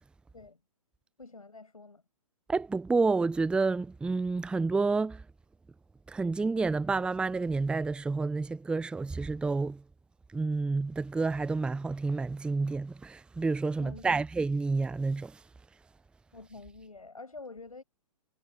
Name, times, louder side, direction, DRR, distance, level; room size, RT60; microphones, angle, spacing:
voice 1, 1.2-2.0 13.8-14.1 16.3-17.8, left 3 dB, 90° left, 7.8 m, -47 dB
voice 2, 2.5-5.2 6.1-9.8 10.3-15.4, right 3 dB, 5° right, 0.7 m, -29 dB
figure-of-eight pair, 125°, 18 cm